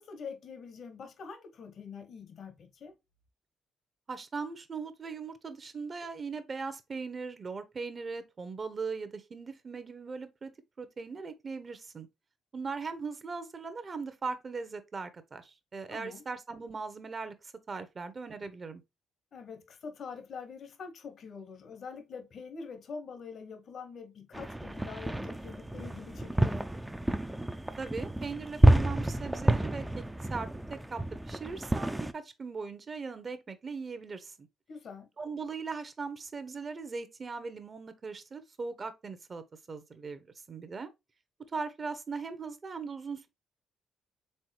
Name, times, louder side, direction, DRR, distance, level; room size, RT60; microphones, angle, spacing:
voice 1, 0.0-3.0 15.9-16.2 19.3-26.7 34.7-35.1, left 5 dB, 60° left, 0.9 m, -45 dB
voice 2, 4.1-10.5 10.8-12.1 12.5-18.8 27.8-30.0 30.3-34.5 35.2-40.9 41.5-43.3, right 4 dB, 40° right, 0.8 m, -39 dB
sound 1, 24.3-32.1, right 1 dB, 10° right, 0.4 m, -29 dB
4.4 x 3.6 x 3.2 m
supercardioid pair, 60°, 0 cm